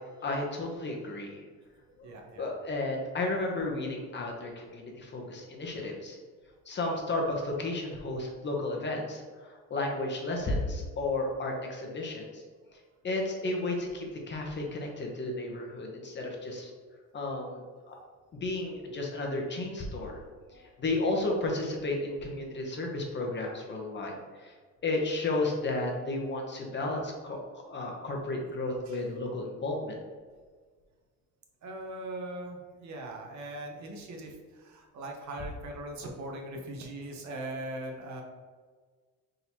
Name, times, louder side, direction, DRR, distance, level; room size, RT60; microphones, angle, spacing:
voice 1, 0.2-1.4 2.0-2.1 2.4-6.2 6.7-12.4 13.0-16.7 17.1-17.6 17.9-18.0 18.4-20.2 20.5-24.5 24.8-27.4 27.7-30.0, left 2 dB, 30° left, 0 dB, 0.8 m, -33 dB
voice 2, 2.0-2.5 20.4-20.8 28.9-29.0 31.6-38.2, right 1 dB, 55° right, 2 dB, 0.9 m, -40 dB
3.7 x 2.9 x 4.3 m, 1.5 s
cardioid pair, 110°, 35 cm